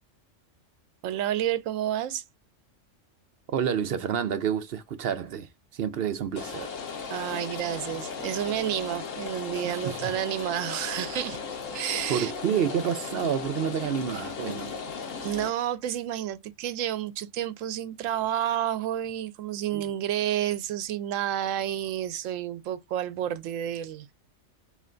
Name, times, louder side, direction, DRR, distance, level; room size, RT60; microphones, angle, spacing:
voice 1, 1.0-2.2 7.1-11.4 11.7-12.3 15.2-24.1, right 11 dB, 85° right, 1.0 m, -30 dB
voice 2, 3.5-6.7 9.6-10.1 12.1-14.8 19.7-19.8, right 8 dB, 60° right, 0.7 m, -29 dB
Rain, 6.4-15.5, left 5 dB, 85° left, 1.3 m, -36 dB
3.3 x 3.0 x 3.8 m
omnidirectional pair, 1.3 m